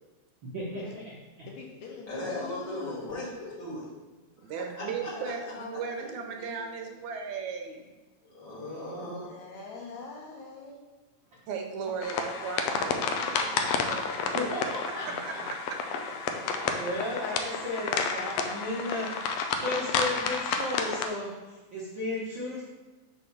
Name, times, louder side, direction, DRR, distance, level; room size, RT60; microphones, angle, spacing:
voice 1, 0.5-0.8 14.3-15.4 16.4-19.1 19.6-22.6, left 1 dB, 55° right, -7 dB, 1.4 m, -34 dB
voice 2, 1.5-3.5 4.9-7.1 9.2-10.8 11.8-12.1, left 4 dB, 70° left, -1 dB, 2.3 m, -44 dB
voice 3, 2.1-3.3 3.6-3.8 4.4-4.5 4.8-5.1 8.2-9.3, left 1 dB, 40° left, -8 dB, 2.8 m, -37 dB
voice 4, 4.4-7.8 11.5-14.1 14.6-14.7 15.0-15.6, right 6 dB, 80° right, 4 dB, 2.0 m, -37 dB
sound 1, 12.0-21.1, left 5 dB, 90° left, 1.4 m, -31 dB
5.2 x 4.2 x 5.9 m, 1.2 s
omnidirectional pair, 3.4 m